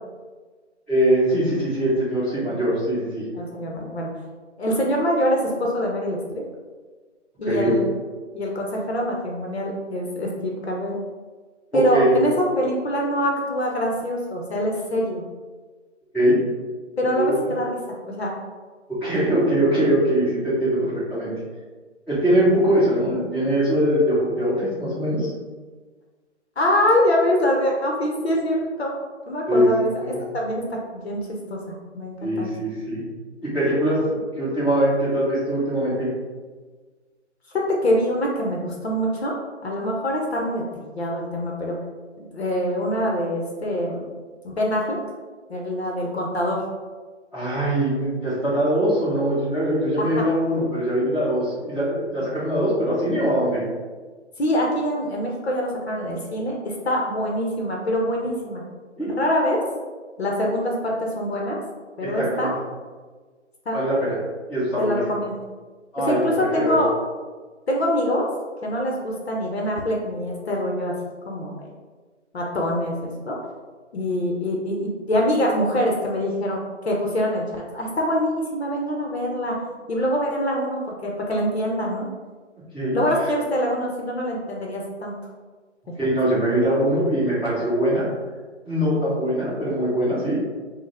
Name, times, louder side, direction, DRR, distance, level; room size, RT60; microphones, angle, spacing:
voice 1, 0.9-3.2 7.4-7.7 11.7-12.2 16.1-16.4 17.1-17.4 19.0-21.3 22.1-25.3 29.5-29.7 30.0-30.2 32.2-33.0 33.4-34.0 34.4-36.1 47.3-53.6 59.0-59.1 62.0-62.5 63.7-64.1 64.5-65.1 65.9-66.2 66.5-66.8 82.7-83.0 86.0-88.0 88.6-90.4, right 1 dB, ahead, -16 dB, 1.5 m, -22 dB
voice 2, 3.3-4.1 4.6-6.4 7.4-7.8 8.3-11.0 11.7-15.2 17.0-18.3 26.6-28.9 29.3-32.5 37.5-39.3 39.6-41.8 42.2-44.1 44.4-45.0 45.5-46.6 50.0-50.2 54.4-58.6 59.0-59.6 60.2-61.6 62.0-62.5 63.7-63.8 64.8-65.4 66.0-66.9 67.7-68.3 68.6-70.9 71.3-71.7 72.3-73.4 73.9-79.6 79.9-82.1 82.9-85.2 85.9-86.0, equal, 60° left, -1 dB, 0.9 m, -24 dB
5.2 x 2.3 x 3.4 m, 1.4 s
figure-of-eight pair, 145°, 36 cm